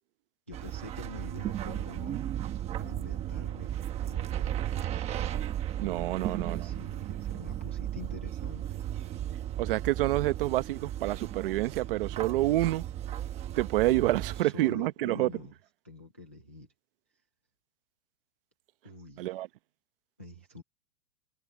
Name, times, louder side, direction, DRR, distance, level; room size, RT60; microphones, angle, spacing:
voice 1, 0.5-2.3 2.8-3.7 4.0-4.7 6.2-8.7 14.3-15.5 15.8-16.7 18.8-19.3 20.2-20.6, left 1 dB, 10° left, 0.3 m, -46 dB
sound 1, 0.5-14.4, right 11 dB, 15° right, 1.0 m, -35 dB
voice 2, 5.8-6.8 9.6-12.8 13.6-15.3 19.2-19.5, right 16 dB, 40° right, 0.9 m, -28 dB
supercardioid pair, 170°, 44 cm